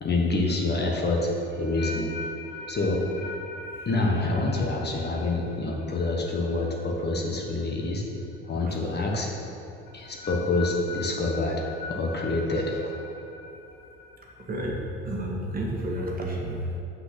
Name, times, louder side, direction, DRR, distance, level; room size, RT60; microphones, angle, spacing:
voice 1, 0.0-2.1 2.7-3.0 3.8-8.0 8.5-9.3 9.9-12.8, left 2 dB, 35° left, -1 dB, 1.3 m, -27 dB
sound 1, 1.1-8.0 8.2-8.6 9.9-14.5, left 4 dB, 70° left, 1.2 m, -42 dB
voice 2, 14.4-16.8, right 1 dB, 30° right, -2 dB, 1.6 m, -31 dB
6.0 x 5.8 x 5.9 m, 2.6 s
hypercardioid pair, 75°, 30 cm